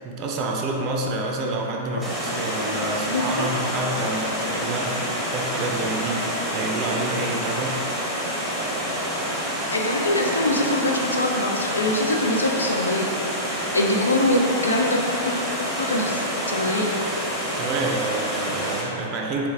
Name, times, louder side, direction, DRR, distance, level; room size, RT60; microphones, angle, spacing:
voice 1, 0.0-5.0 5.3-7.8 17.6-19.5, right 2 dB, 35° right, 1 dB, 0.4 m, -28 dB
Water, 2.0-18.8, equal, ahead, 0.9 m, -28 dB
voice 2, 3.1-3.5 9.7-13.1 13.7-15.4 15.8-17.0, left 1 dB, 80° left, 0 dB, 0.4 m, -23 dB
3.3 x 3.1 x 3.5 m, 3.0 s
figure-of-eight pair, 100°, 0 cm